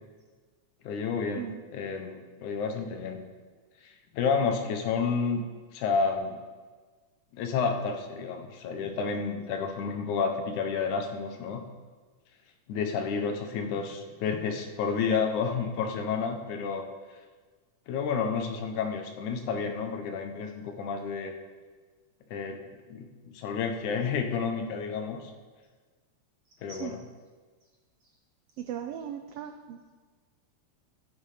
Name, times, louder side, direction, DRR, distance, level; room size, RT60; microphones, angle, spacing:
voice 1, 0.8-1.5 1.7-3.2 3.8-5.4 5.7-6.4 7.3-11.6 12.7-16.9 17.9-21.4 22.3-25.3 26.6-27.0, left 5 dB, 80° left, 5 dB, 2.5 m, -30 dB
voice 2, 28.6-29.8, right 9 dB, 90° right, 6 dB, 1.3 m, -38 dB
16.0 x 7.2 x 5.0 m, 1.4 s
omnidirectional pair, 3.4 m